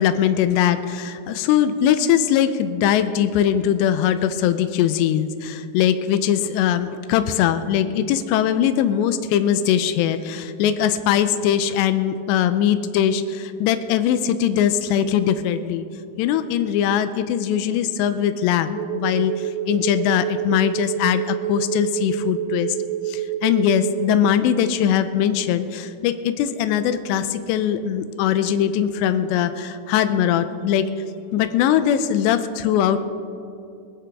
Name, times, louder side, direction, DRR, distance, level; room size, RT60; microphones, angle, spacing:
voice 1, 0.0-15.8 16.2-22.8 23.1-30.9 31.3-33.0, left 9 dB, 85° left, 10 dB, 2.6 m, -21 dB
sound 1, 18.7-24.3, right 11 dB, 80° right, 2.3 m, -28 dB
25.5 x 10.5 x 3.6 m, 2.6 s
omnidirectional pair, 5.5 m